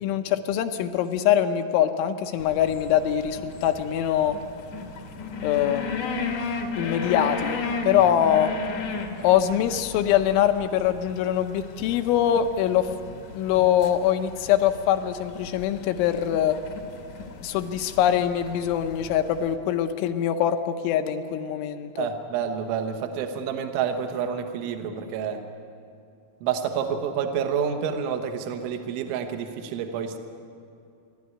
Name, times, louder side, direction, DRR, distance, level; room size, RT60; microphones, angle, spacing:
voice 1, 0.0-4.4 5.4-6.3 6.8-8.5 9.2-12.9 13.3-16.6 17.4-22.1, left 10 dB, 80° left, 7 dB, 3.1 m, -23 dB
sound 1, 2.4-19.5, left 4 dB, 65° left, 1.9 m, -35 dB
voice 2, 22.0-25.4 26.4-30.2, right 7 dB, 75° right, 6 dB, 3.5 m, -28 dB
28.5 x 12.0 x 9.8 m, 2.5 s
omnidirectional pair, 5.8 m